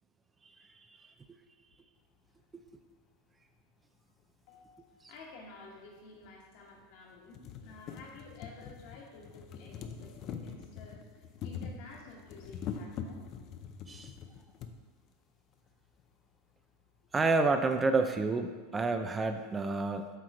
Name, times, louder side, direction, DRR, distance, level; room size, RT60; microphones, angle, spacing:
voice 1, 4.5-13.3, left 3 dB, 60° left, -1 dB, 1.5 m, -52 dB
sound 1, 5.2-5.3 6.2-6.3 6.8-6.9 7.2-14.7 15.7-15.8 16.0-16.1, left 7 dB, 45° left, 0.5 m, -43 dB
voice 2, 17.1-20.1, right 3 dB, 20° right, 7 dB, 0.4 m, -29 dB
7.9 x 3.1 x 4.9 m, 1.4 s
supercardioid pair, 115°, 0 cm